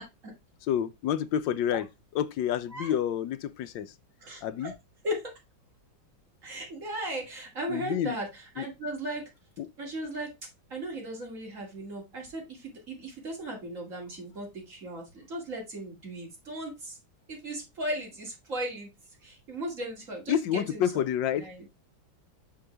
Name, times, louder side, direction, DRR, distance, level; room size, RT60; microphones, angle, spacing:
voice 1, 0.6-1.9 2.1-3.9 4.4-4.7 7.7-8.2 8.6-8.7 9.6-9.7 20.3-21.5, left 10 dB, 75° left, 1.2 m, -29 dB
voice 2, 4.2-4.7 5.0-5.2 6.4-9.3 9.8-10.3 10.7-17.0 17.3-18.9 19.2-20.8 21.4-21.6, right 1 dB, 40° right, 2.7 m, -37 dB
6.0 x 5.7 x 3.3 m
omnidirectional pair, 2.1 m